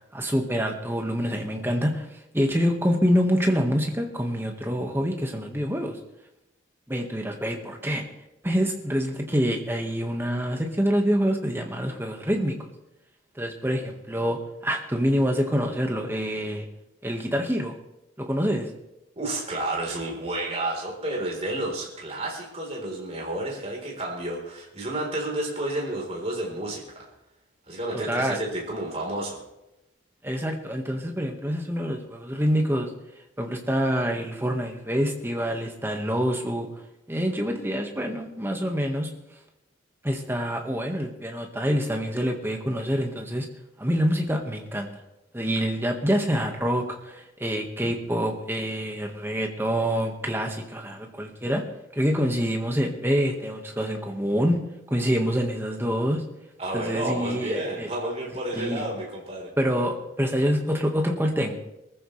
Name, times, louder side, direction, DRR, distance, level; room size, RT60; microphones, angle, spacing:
voice 1, 0.1-2.1 2.3-6.0 6.9-8.0 8.4-12.5 13.4-14.4 14.6-16.7 17.0-17.7 18.2-18.7 27.9-28.4 30.2-32.9 33.4-36.7 37.1-39.1 40.0-43.5 43.8-44.9 45.3-51.6 51.9-54.6 54.9-56.2 56.7-57.9 58.5-58.9 59.6-61.6, equal, 10° right, 2 dB, 1.6 m, -26 dB
voice 2, 19.1-27.0 27.7-29.4 56.6-59.5, right 1 dB, 30° right, -2 dB, 4.0 m, -31 dB
22.5 x 14.5 x 3.3 m, 0.90 s
head